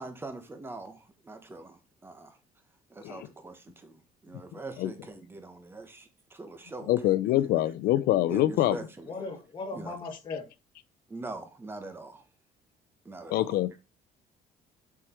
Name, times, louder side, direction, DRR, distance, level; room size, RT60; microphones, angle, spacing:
voice 1, 0.0-2.4 2.9-7.1 8.3-9.1 9.7-10.0 11.1-12.2 13.0-13.5, right 2 dB, 15° right, 1.3 m, -43 dB
voice 2, 6.9-8.8 13.3-13.7, left 14 dB, 75° left, 0.6 m, -25 dB
voice 3, 9.0-10.4, left 3 dB, 30° left, 2.3 m, -37 dB
8.2 x 4.9 x 4.5 m
cardioid pair, 150°, 16 cm